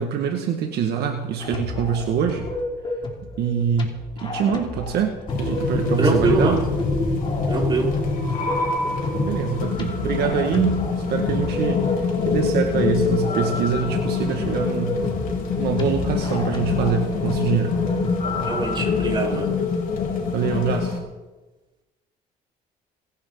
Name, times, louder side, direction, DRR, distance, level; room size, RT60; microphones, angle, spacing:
voice 1, 0.0-2.5 3.4-3.9 4.2-6.6 9.1-15.0 15.6-17.7 20.3-21.0, right 7 dB, 75° right, 3 dB, 1.8 m, -24 dB
sound 1, 1.4-19.3, left 3 dB, 30° left, 3.1 m, -33 dB
sound 2, 5.3-21.0, left 4 dB, 55° left, 5.2 m, -25 dB
voice 2, 6.0-6.7 7.5-7.9 18.4-19.5, right 3 dB, 25° right, -2 dB, 4.5 m, -23 dB
Organ, 7.8-18.5, left 1 dB, 45° right, 4.6 m, -41 dB
27.0 x 11.5 x 3.9 m, 1.1 s
cardioid pair, 110°, 17 cm